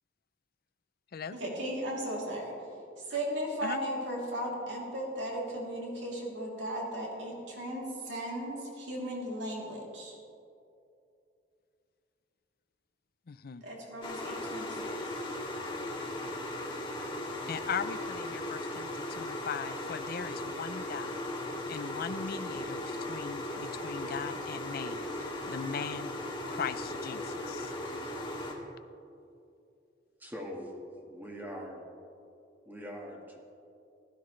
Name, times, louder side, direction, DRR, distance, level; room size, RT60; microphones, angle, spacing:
voice 1, 1.4-2.5 3.0-10.1 13.6-14.9, right 1 dB, 70° right, -3 dB, 3.0 m, -36 dB
voice 2, 13.3-13.6 17.5-21.2 21.7-26.1 26.5-27.7, left 6 dB, 55° left, 13 dB, 0.5 m, -39 dB
sound 1, 14.0-28.5, left 1 dB, 25° left, 2.0 m, -37 dB
voice 3, 30.2-31.8 32.7-33.4, equal, 10° right, 0 dB, 1.6 m, -42 dB
16.0 x 12.5 x 3.2 m, 2.6 s
head